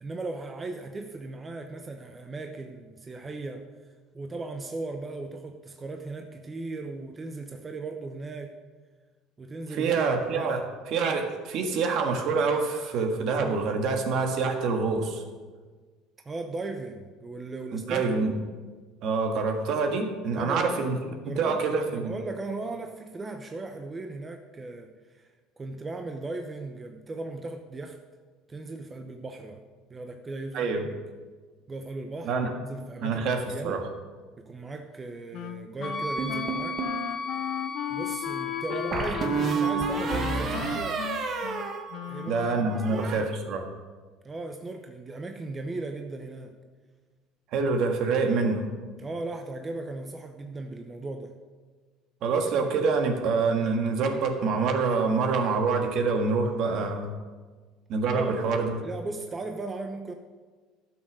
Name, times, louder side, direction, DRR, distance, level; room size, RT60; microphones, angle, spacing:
voice 1, 0.0-3.7 4.1-8.6 9.4-10.6 16.2-18.0 20.3-20.8 21.2-21.6 21.9-25.3 25.6-28.0 28.5-29.6 29.9-30.7 31.7-33.8 34.4-36.8 37.9-41.0 42.1-42.5 42.9-43.3 44.2-46.5 49.0-51.3 58.1-58.4 58.8-60.1, right 3 dB, 20° right, 5 dB, 0.8 m, -37 dB
voice 2, 9.7-10.6 10.9-15.2 17.7-18.3 19.0-21.0 21.3-22.1 30.5-30.8 32.2-32.5 33.0-33.8 42.3-43.7 47.5-48.7 52.2-57.1 57.9-58.8, right 4 dB, 60° right, 4 dB, 1.6 m, -26 dB
Wind instrument woodwind instrument, 35.3-42.8, left 13 dB, 65° left, 0.5 m, -36 dB
Wind instrument woodwind instrument 2, 35.8-39.4, left 3 dB, 25° left, 2.4 m, -35 dB
sound 1, 36.2-37.0 38.9-42.4 42.7-43.2, right 5 dB, 45° right, 1.5 m, -30 dB
12.0 x 6.5 x 6.2 m, 1.4 s
supercardioid pair, 105°, 0 cm